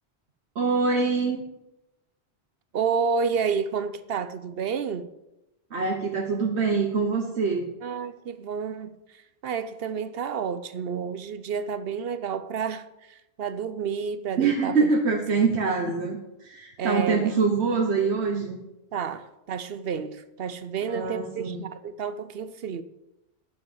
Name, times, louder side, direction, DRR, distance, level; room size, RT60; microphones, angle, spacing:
voice 1, 0.5-1.4 5.7-7.7 14.4-18.6 20.9-21.6, right 4 dB, 85° right, 1.4 m, -24 dB
voice 2, 2.7-5.1 7.8-14.9 16.8-17.3 18.9-22.8, right 6 dB, 70° right, 0.9 m, -30 dB
9.7 x 7.9 x 7.1 m
omnidirectional pair, 1.1 m